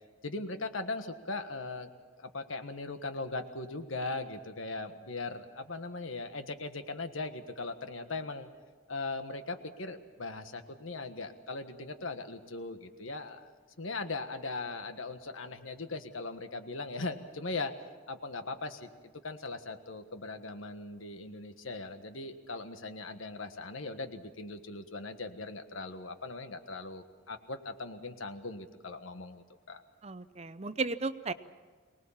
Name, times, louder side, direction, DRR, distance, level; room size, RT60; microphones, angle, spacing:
voice 1, 0.2-1.9 2.2-8.5 8.9-13.5 13.8-17.7 18.1-18.9 19.2-29.8, left 3 dB, 85° left, 8 dB, 1.5 m, -39 dB
voice 2, 30.0-31.3, right 3 dB, 30° right, 13 dB, 0.6 m, -34 dB
23.5 x 19.0 x 7.3 m, 1.4 s
head